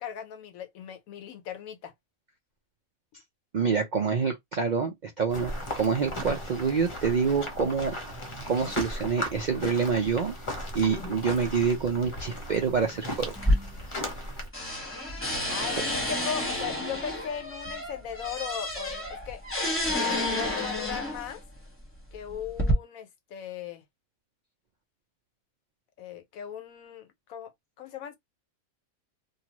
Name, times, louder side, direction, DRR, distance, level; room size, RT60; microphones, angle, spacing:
voice 1, 0.0-1.9 15.5-19.4 19.9-21.4 22.1-23.8 26.0-27.5 27.8-28.2, left 8 dB, 80° left, 1.1 m, -38 dB
voice 2, 3.5-8.2 8.5-10.3 10.7-13.4 13.6-13.7, right 5 dB, 65° right, 0.4 m, -27 dB
sound 1, 5.3-14.5, equal, 30° left, 0.6 m, -36 dB
sound 2, 13.4-14.3 14.5-21.4 22.1-22.7, left 1 dB, 10° left, 1.0 m, -30 dB
2.7 x 2.3 x 2.9 m
omnidirectional pair, 1.4 m